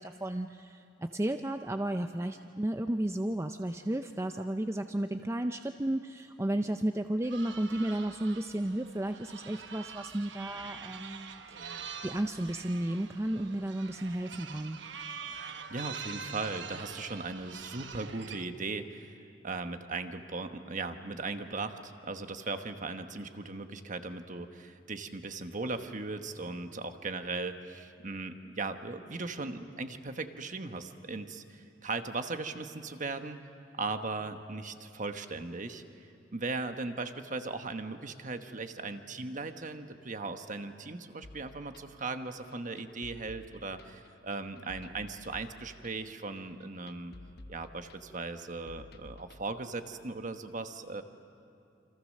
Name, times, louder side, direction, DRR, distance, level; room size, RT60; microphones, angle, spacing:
voice 1, 0.0-11.7 12.0-14.8, right 1 dB, 15° right, 7 dB, 0.5 m, -33 dB
sound 1, 7.2-18.4, right 6 dB, 65° right, 1.1 m, -45 dB
voice 2, 15.7-33.4 33.8-35.8 36.3-47.1 47.5-51.0, right 3 dB, 40° right, 7 dB, 1.2 m, -38 dB
sound 2, 41.2-49.4, left 2 dB, 55° left, 0.8 m, -53 dB
28.5 x 26.0 x 6.5 m, 2.6 s
head